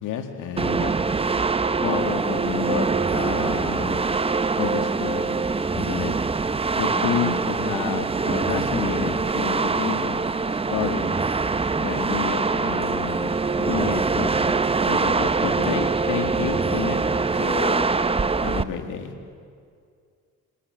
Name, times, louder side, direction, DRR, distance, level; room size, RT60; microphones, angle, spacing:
voice 1, 0.0-0.9 1.8-4.0 4.6-5.3 5.7-6.1 6.8-11.1 11.8-14.6 14.9-17.0 18.4-19.1, left 7 dB, 85° left, 5 dB, 2.0 m, -30 dB
sound 1, 0.6-18.6, right 4 dB, 20° right, 0.7 m, -24 dB
voice 2, 6.9-7.4 17.1-17.9, left 3 dB, 35° left, 4 dB, 2.6 m, -33 dB
26.5 x 19.5 x 7.6 m, 2.3 s
cardioid pair, 90°, 30 cm